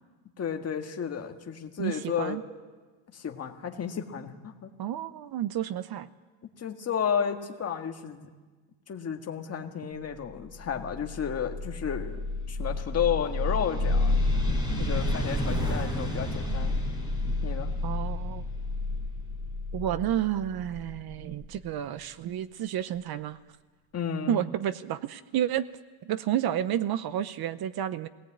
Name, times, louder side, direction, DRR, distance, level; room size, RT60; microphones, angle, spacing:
voice 1, 0.4-2.4 3.1-4.7 6.4-8.3 8.9-12.2 12.5-14.2 14.8-16.8 17.4-17.7 23.9-24.4, left 8 dB, 30° left, 4 dB, 1.7 m, -32 dB
voice 2, 1.8-2.4 4.8-6.1 17.8-18.5 19.7-23.4 24.3-25.7 26.1-28.1, right 11 dB, 50° right, 15 dB, 0.7 m, -30 dB
sound 1, 10.7-21.4, left 2 dB, 10° right, 4.8 m, -30 dB
22.0 x 18.0 x 8.7 m, 1.3 s
cardioid pair, 150°, 48 cm